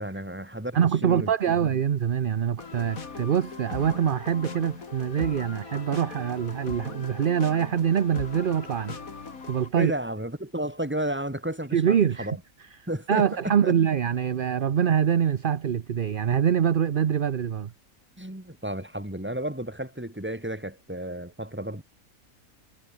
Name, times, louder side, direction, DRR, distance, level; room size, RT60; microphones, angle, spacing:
voice 1, 0.0-1.5 9.8-12.4 12.9-13.7 18.2-21.8, right 1 dB, 5° right, 2.8 m, -32 dB
voice 2, 0.7-8.9 9.5-9.9 11.7-12.3 13.1-17.7, right 8 dB, 45° right, 0.8 m, -24 dB
sound 1, 2.6-9.7, left 4 dB, 70° left, 2.9 m, -39 dB
omnidirectional pair, 1.5 m